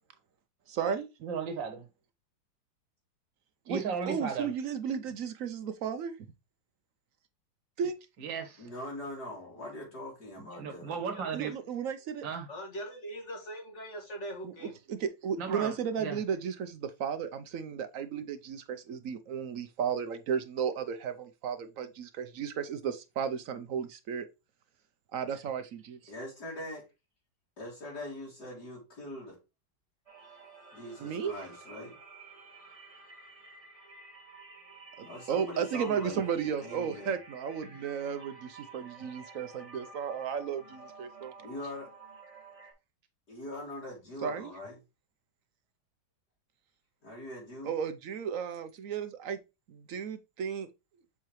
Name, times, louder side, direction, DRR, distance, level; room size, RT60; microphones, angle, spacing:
voice 1, 0.7-1.1 3.7-3.8 4.1-6.2 7.8-8.0 11.3-12.2 14.4-14.5 14.9-24.3 25.1-26.1 31.0-31.3 35.0-41.3 44.2-44.5 47.6-49.4 49.7-50.7, right 7 dB, 70° right, 0.8 m, -34 dB
voice 2, 1.2-1.9 3.7-4.5 8.2-8.7 10.4-11.5 12.2-12.5 15.4-16.2, right 6 dB, 90° right, 1.9 m, -36 dB
voice 3, 8.6-11.0 26.1-26.8 27.6-29.4 30.7-31.9 35.0-37.1 41.4-41.9 43.3-44.8 47.0-47.7, left 1 dB, 60° left, 3.0 m, -42 dB
voice 4, 12.5-14.8, right 1 dB, 40° left, 2.2 m, -41 dB
sound 1, 30.1-42.7, right 3 dB, 20° right, 1.3 m, -52 dB
7.5 x 4.5 x 3.1 m
omnidirectional pair, 2.0 m